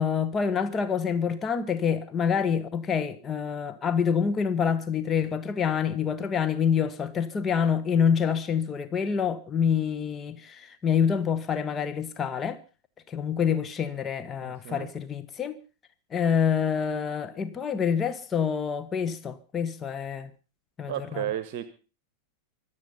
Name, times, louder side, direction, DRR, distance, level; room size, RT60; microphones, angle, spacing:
voice 1, 0.0-12.6 13.1-15.6 16.1-20.3 20.8-21.2, left 7 dB, 25° left, 1.3 m, -27 dB
voice 2, 14.4-14.9 20.9-21.6, right 12 dB, 50° right, 1.1 m, -33 dB
25.0 x 8.5 x 5.5 m
figure-of-eight pair, 90°, 0 cm